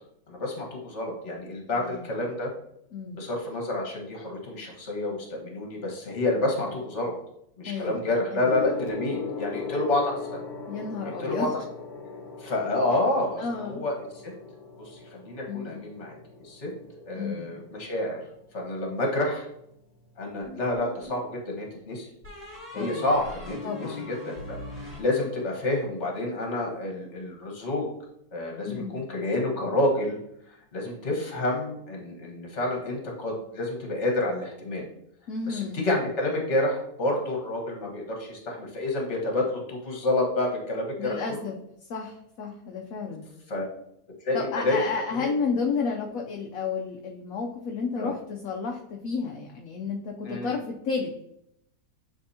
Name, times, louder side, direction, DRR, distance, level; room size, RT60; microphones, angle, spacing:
voice 1, 0.3-2.5 3.2-7.1 7.6-10.4 11.0-11.5 12.4-14.2 14.8-16.7 17.1-18.2 18.5-19.5 20.2-22.1 22.7-27.9 28.3-30.2 30.5-34.9 35.5-41.4 43.5-43.6 44.2-44.8 45.1-45.3 45.8-45.9 48.0-48.1 50.2-50.5, left 2 dB, 50° left, 0 dB, 1.6 m, -29 dB
voice 2, 1.8-2.1 2.9-3.2 7.7-8.0 8.3-8.5 10.7-11.5 13.4-13.8 15.5-15.8 17.1-17.5 22.7-23.1 23.6-24.1 28.7-29.0 35.3-35.8 41.0-41.6 41.9-43.3 44.3-51.1, left 5 dB, 70° left, 1 dB, 1.0 m, -32 dB
Gong, 8.5-18.2 19.2-19.4, left 4 dB, 90° left, 1.3 m, -39 dB
sound 1, 20.4-21.3 22.2-25.7, left 1 dB, 30° right, 2.7 m, -41 dB
10.0 x 3.4 x 2.7 m, 0.78 s
omnidirectional pair, 1.6 m